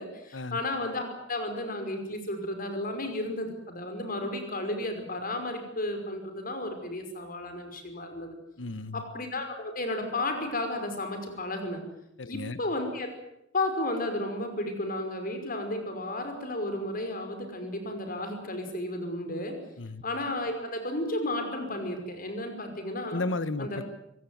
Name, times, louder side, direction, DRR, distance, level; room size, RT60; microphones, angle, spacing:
voice 1, 0.0-8.3 8.9-11.8 12.3-13.1 13.5-19.6 20.0-23.2 23.6-23.8, left 1 dB, 50° left, 6 dB, 5.4 m, -33 dB
voice 2, 8.6-9.0 12.2-12.6 19.8-20.0 23.1-23.8, left 2 dB, 75° left, 14 dB, 1.3 m, -33 dB
24.5 x 17.5 x 9.5 m, 0.81 s
head